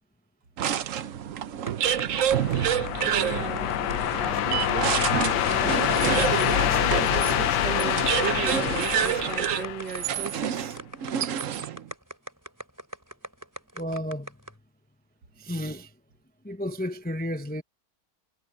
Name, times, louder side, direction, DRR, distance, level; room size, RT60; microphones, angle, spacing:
sound 1, 0.6-11.9, right 9 dB, 55° right, 1.0 m, -28 dB
sound 2, 1.7-14.5, equal, 10° right, 4.3 m, -39 dB
sound 3, 1.9-10.4, left 12 dB, 75° left, 1.3 m, -26 dB
voice 1, 3.1-3.7 4.2-4.9 5.4-10.8, right 7 dB, 80° right, 2.3 m, -36 dB
voice 2, 13.7-14.4 15.4-15.9 16.4-17.6, equal, 10° left, 0.4 m, -32 dB
omnidirectional pair, 1.9 m